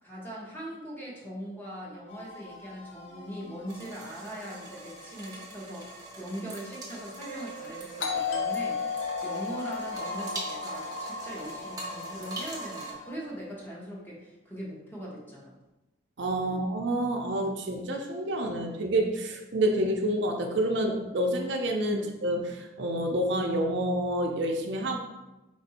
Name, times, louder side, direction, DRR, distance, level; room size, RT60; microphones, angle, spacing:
voice 1, 0.0-15.6 16.4-16.7 21.9-22.1, right 1 dB, 10° left, -5 dB, 1.0 m, -41 dB
sound 1, 2.1-13.1, right 1 dB, 35° left, 0.6 m, -45 dB
sound 2, 3.7-12.9, right 2 dB, 20° right, 0.8 m, -42 dB
Doorbell, 8.0-12.6, left 7 dB, 70° left, 0.8 m, -34 dB
voice 2, 16.2-25.0, right 1 dB, 60° right, 3 dB, 0.5 m, -28 dB
4.7 x 2.6 x 4.1 m, 1.0 s
head